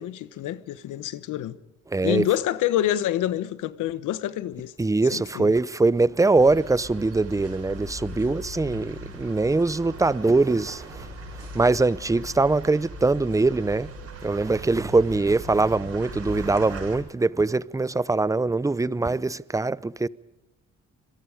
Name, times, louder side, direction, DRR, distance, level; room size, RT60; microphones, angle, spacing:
voice 1, 0.0-1.6 2.0-4.7 5.1-5.6, left 12 dB, 85° left, 1.2 m, -27 dB
voice 2, 1.9-2.2 4.8-11.1 11.4-13.9 14.2-20.1, right 3 dB, 10° right, 0.7 m, -22 dB
sound 1, 6.3-17.0, right 1 dB, 55° right, 7.6 m, -39 dB
25.5 x 23.0 x 5.1 m
cardioid pair, 90°, 30 cm